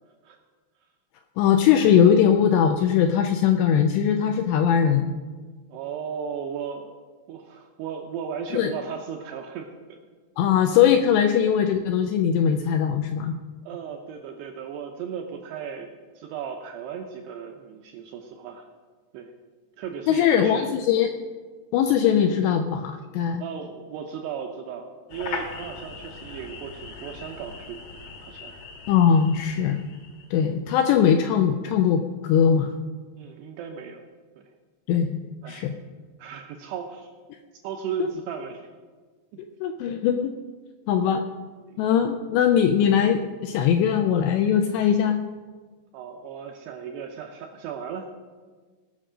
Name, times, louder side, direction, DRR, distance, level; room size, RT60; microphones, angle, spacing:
voice 1, 1.4-5.1 8.5-8.7 10.4-13.3 20.1-21.1 21.7-23.4 28.9-29.8 30.3-32.7 34.9-35.2 35.5-35.7 39.6-40.4 40.9-41.2 41.8-45.2, left 8 dB, 85° left, 6 dB, 2.5 m, -20 dB
voice 2, 5.7-7.0 7.3-10.0 13.6-18.7 19.1-19.3 19.8-20.7 23.4-27.8 28.2-28.5 30.4-30.6 33.2-34.0 34.4-34.5 35.4-35.7 36.2-37.1 37.6-38.7 41.7-41.8 45.9-48.1, right 7 dB, 80° right, 3 dB, 2.5 m, -36 dB
sound 1, 25.1-30.4, left 4 dB, 65° left, 2.0 m, -39 dB
19.0 x 6.5 x 5.0 m, 1.5 s
omnidirectional pair, 5.5 m